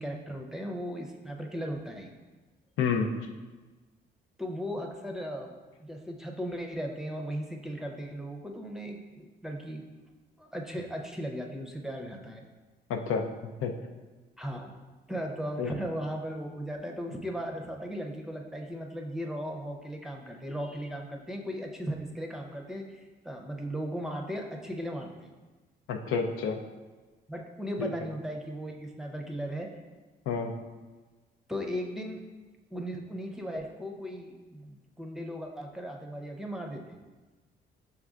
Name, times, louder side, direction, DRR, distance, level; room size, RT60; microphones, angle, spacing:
voice 1, 0.0-2.1 4.4-5.5 5.8-9.8 10.4-12.4 14.4-14.7 15.1-25.3 27.3-29.7 31.5-32.2 32.7-37.0, equal, ahead, 1 dB, 0.6 m, -37 dB
voice 2, 2.8-3.1 12.9-13.3 13.6-13.7 15.6-15.7 25.9-26.6 27.8-27.9 30.3-30.5, left 6 dB, 85° left, 4 dB, 0.5 m, -29 dB
6.3 x 3.4 x 2.4 m, 1.3 s
cardioid pair, 90°, 20 cm